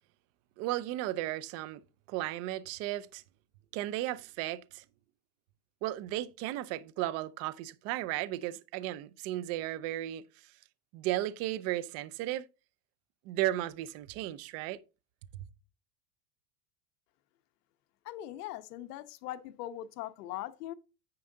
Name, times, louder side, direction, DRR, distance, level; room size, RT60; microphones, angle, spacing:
voice 1, 0.6-1.8 2.1-3.2 3.7-4.8 5.8-10.2 10.9-12.5 13.3-14.8, right 15 dB, 35° right, 0.5 m, -35 dB
voice 2, 18.0-20.7, left 13 dB, 80° left, 1.1 m, -40 dB
9.6 x 5.4 x 3.8 m
supercardioid pair, 160°, 46 cm